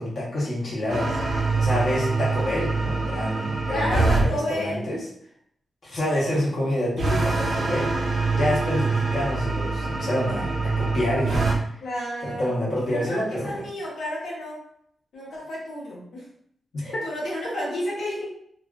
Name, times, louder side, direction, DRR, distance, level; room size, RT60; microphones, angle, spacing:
voice 1, 0.0-5.0 5.8-7.9 8.4-11.5 12.2-13.6 16.7-16.8, left 1 dB, 45° left, -6 dB, 0.8 m, -27 dB
sound 1, 0.9-4.3 7.0-11.6, right 3 dB, 70° right, 0.8 m, -24 dB
voice 2, 3.7-4.9 11.8-14.6 15.1-16.3 16.8-18.3, left 1 dB, 90° left, -5 dB, 0.8 m, -31 dB
2.4 x 2.2 x 2.3 m, 0.67 s
wide cardioid pair, 170°, 0 cm